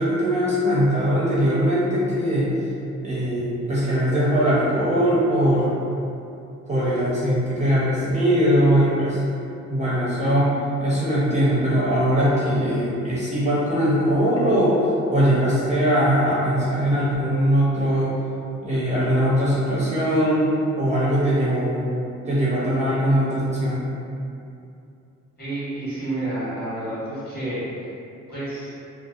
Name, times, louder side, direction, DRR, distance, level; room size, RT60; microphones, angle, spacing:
voice 1, 0.0-2.5 3.0-5.7 6.7-9.2 9.7-14.8 15.1-18.1 18.6-20.5 20.8-21.8 22.2-23.9, equal, 25° right, -8 dB, 0.5 m, -21 dB
voice 2, 25.4-27.6 28.3-28.7, right 1 dB, 35° left, -10 dB, 1.3 m, -29 dB
2.6 x 2.1 x 2.3 m, 2.7 s
cardioid pair, 90°, 30 cm